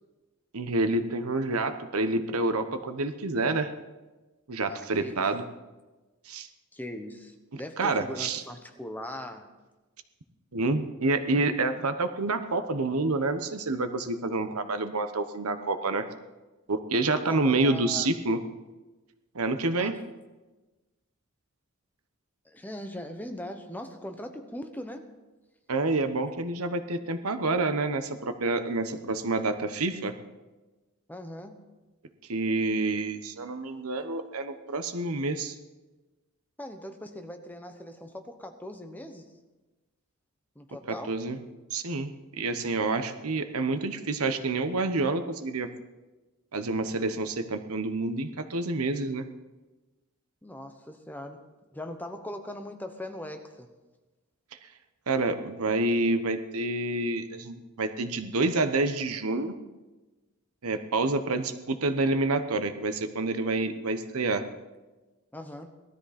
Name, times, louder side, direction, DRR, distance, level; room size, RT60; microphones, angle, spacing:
voice 1, 0.5-3.7 4.5-5.4 6.3-6.5 7.5-8.4 10.5-16.1 16.7-18.4 19.3-19.9 25.7-30.1 32.3-35.5 41.1-41.4 41.7-45.7 46.5-49.2 55.1-59.5 60.6-64.4, right 2 dB, 80° right, 9 dB, 1.1 m, -28 dB
voice 2, 4.7-5.3 6.7-9.5 17.1-18.1 19.8-19.9 22.4-25.1 31.1-31.6 36.6-39.3 40.6-41.1 43.7-43.8 50.4-51.4 51.7-53.7 65.3-65.7, left 1 dB, 10° left, 6 dB, 1.0 m, -40 dB
18.0 x 13.0 x 4.3 m, 1.2 s
head